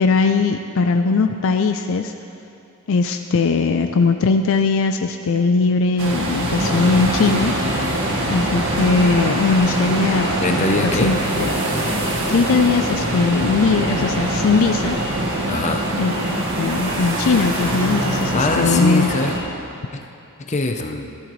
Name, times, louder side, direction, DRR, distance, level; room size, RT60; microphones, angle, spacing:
voice 1, 0.0-2.1 2.9-7.6 8.3-10.3 10.9-11.5 12.3-15.0 16.0-19.1, left 4 dB, 65° left, 7 dB, 0.4 m, -19 dB
sound 1, 6.0-19.4, right 1 dB, 60° right, 1.7 m, -23 dB
voice 2, 10.4-11.2 15.5-15.9 18.3-19.3 19.9-20.0 20.4-21.0, left 2 dB, 30° left, 4 dB, 0.7 m, -22 dB
14.0 x 12.0 x 3.2 m, 2.7 s
head